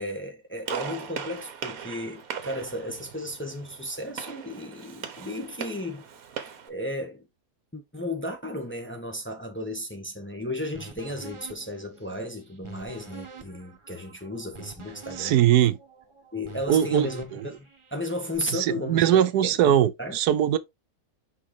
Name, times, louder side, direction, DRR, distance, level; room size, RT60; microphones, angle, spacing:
voice 1, 0.0-6.0 6.7-7.2 7.7-15.4 16.3-20.2, left 1 dB, 10° left, 0.9 m, -34 dB
Gunshot gunfire, 0.7-6.7, right 7 dB, 65° right, 1.4 m, -39 dB
sound 1, 10.7-18.4, right 5 dB, 20° right, 1.0 m, -46 dB
voice 2, 15.2-15.8 16.7-17.5 18.5-20.6, right 10 dB, 85° right, 1.2 m, -21 dB
6.2 x 4.8 x 3.2 m
omnidirectional pair, 1.7 m